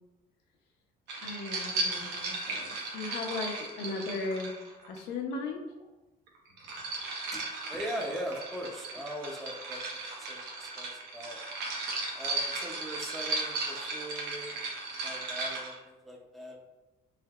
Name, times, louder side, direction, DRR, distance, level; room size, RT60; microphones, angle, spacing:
sound 1, 1.1-5.0 6.3-15.8, right 3 dB, 90° right, 0.7 m, -36 dB
voice 1, 1.2-4.6 4.8-5.7, left 3 dB, 80° left, 1 dB, 0.5 m, -37 dB
voice 2, 7.7-11.4 12.2-14.6 15.0-16.6, equal, ahead, -1 dB, 0.4 m, -40 dB
3.4 x 2.7 x 2.3 m, 1.1 s
cardioid pair, 110°, 17 cm